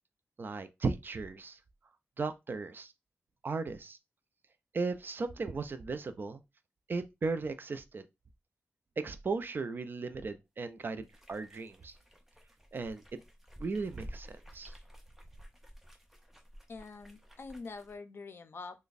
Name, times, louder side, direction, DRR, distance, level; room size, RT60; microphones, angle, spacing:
voice 1, 0.4-1.6 2.2-2.9 3.4-4.0 4.7-6.4 6.9-8.0 9.0-11.9 12.7-13.2 13.6-14.7, right 4 dB, 50° right, 0.4 m, -36 dB
sound 1, 11.0-18.0, equal, 5° right, 0.6 m, -52 dB
voice 2, 16.7-18.8, left 4 dB, 55° left, 0.5 m, -45 dB
3.4 x 2.1 x 3.9 m
wide cardioid pair, 130°, 5 cm